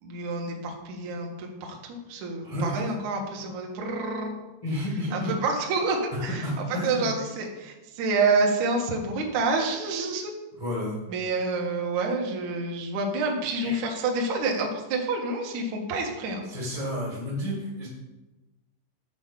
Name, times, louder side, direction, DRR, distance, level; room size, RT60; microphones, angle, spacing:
voice 1, 0.0-4.3 5.1-6.5 6.8-10.3 11.1-16.5, right 3 dB, 75° right, 0 dB, 1.8 m, -28 dB
voice 2, 2.4-2.8 4.6-5.3 6.1-7.1 10.6-11.0 13.6-13.8 16.4-17.9, left 1 dB, 55° left, -5 dB, 0.4 m, -31 dB
8.2 x 4.8 x 7.1 m, 1.1 s
omnidirectional pair, 5.3 m